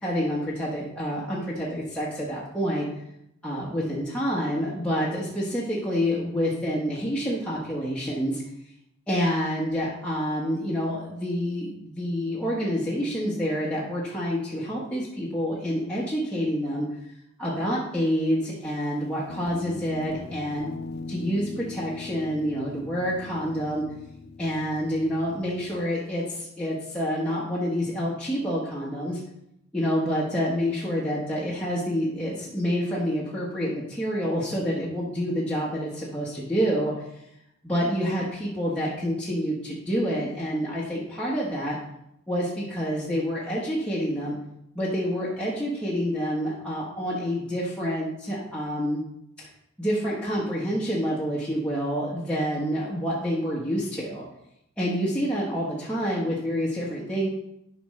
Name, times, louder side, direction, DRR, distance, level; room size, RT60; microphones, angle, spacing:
voice 1, 0.0-2.9 3.4-8.4 9.1-16.9 17.4-20.7 21.1-23.8 24.4-29.2 29.7-36.9 37.6-41.8 42.3-44.4 44.7-49.0 49.4-49.5 49.8-54.2 54.8-57.3, equal, 5° left, -7 dB, 1.2 m, -28 dB
Guitar, 19.3-25.9, left 3 dB, 50° left, 0.4 m, -40 dB
11.0 x 5.1 x 3.2 m, 0.80 s
head